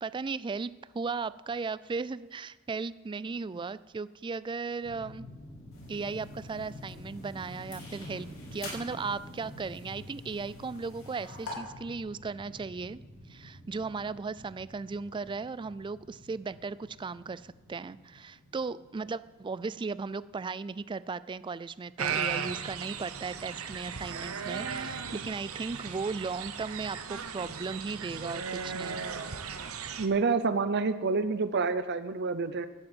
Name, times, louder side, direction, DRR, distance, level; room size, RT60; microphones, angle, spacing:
voice 1, 0.0-5.3 5.9-13.0 13.3-29.0, right 4 dB, 20° right, 18 dB, 0.3 m, -36 dB
sound 1, 4.8-20.3, left 1 dB, 25° left, 2.5 m, -49 dB
sound 2, 5.7-11.5, left 2 dB, 80° left, 4.8 m, -48 dB
sound 3, 22.0-30.1, right 6 dB, 85° right, 1.0 m, -36 dB
voice 2, 30.0-32.7, right 4 dB, 55° right, 12 dB, 0.7 m, -28 dB
11.5 x 7.9 x 8.8 m, 1.2 s
head